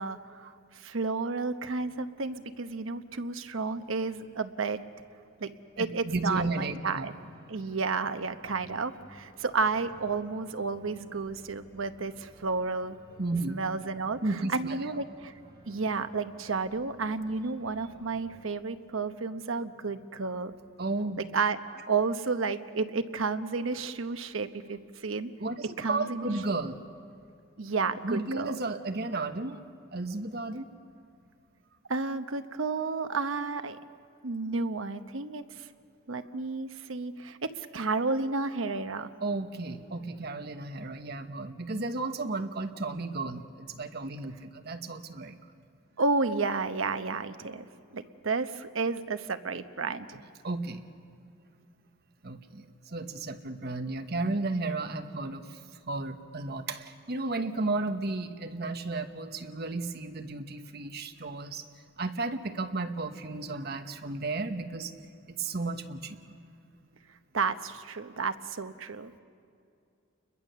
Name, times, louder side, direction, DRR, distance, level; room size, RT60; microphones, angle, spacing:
voice 1, 0.0-4.8 5.4-7.1 7.5-13.0 13.5-15.3 15.7-20.5 21.3-25.3 25.8-26.3 27.6-28.5 31.9-33.8 34.2-35.7 36.1-39.1 46.0-47.7 47.9-50.2 67.3-69.1, right 4 dB, 75° right, 9 dB, 1.0 m, -32 dB
Organ, 1.6-18.4, equal, 20° right, 2.1 m, -57 dB
voice 2, 5.8-7.1 13.2-13.6 14.2-14.8 20.8-21.2 25.4-26.8 28.0-29.6 29.9-30.7 39.2-45.4 50.4-50.8 52.2-55.6 55.9-61.7 62.0-64.9 65.3-66.4, right 3 dB, 50° right, 7 dB, 1.2 m, -33 dB
29.5 x 22.0 x 6.8 m, 2.5 s
head